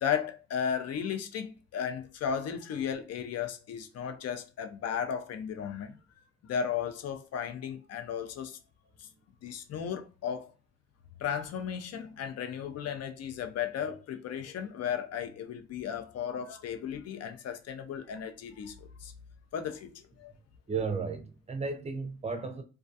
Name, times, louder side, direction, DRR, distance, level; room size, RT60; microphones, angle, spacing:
voice 1, 0.0-6.0 6.4-8.6 9.0-9.1 9.4-10.5 11.2-19.1 19.5-20.3, left 8 dB, 55° left, 0.5 m, -35 dB
voice 2, 20.7-22.6, right 4 dB, 20° right, 0.5 m, -34 dB
2.3 x 2.3 x 2.6 m
cardioid pair, 90°, 30 cm